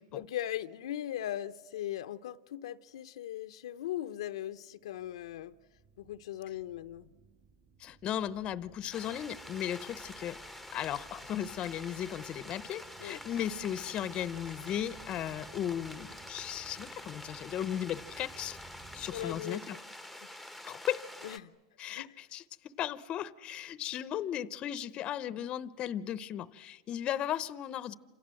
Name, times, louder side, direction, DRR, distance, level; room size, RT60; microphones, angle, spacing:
voice 1, 0.1-5.5 6.0-7.1 13.0-13.2 19.1-19.8 21.2-21.5 21.9-22.2, left 12 dB, 80° left, 0.8 m, -39 dB
sound 1, 4.9-19.4, right 4 dB, 40° right, 2.2 m, -58 dB
voice 2, 7.8-10.4 10.7-18.6 18.9-19.8 20.6-21.1 21.8-22.4 22.8-27.9, left 10 dB, 35° left, 0.8 m, -36 dB
sound 2, 8.9-21.4, left 1 dB, 5° right, 1.0 m, -47 dB
28.5 x 26.5 x 7.7 m
supercardioid pair, 135°, 3 cm